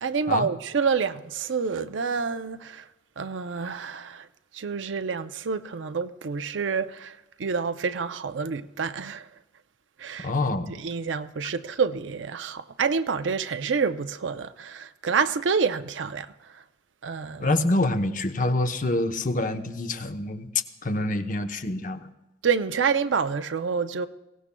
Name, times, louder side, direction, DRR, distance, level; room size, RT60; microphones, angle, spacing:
voice 1, 0.0-2.9 3.2-4.3 4.5-9.3 10.0-10.3 10.7-16.6 17.0-17.5 22.4-24.1, right 5 dB, 80° right, 0.5 m, -28 dB
voice 2, 10.2-10.7 17.4-20.5 20.8-22.0, left 2 dB, 45° left, 0.8 m, -26 dB
22.5 x 17.0 x 2.2 m
head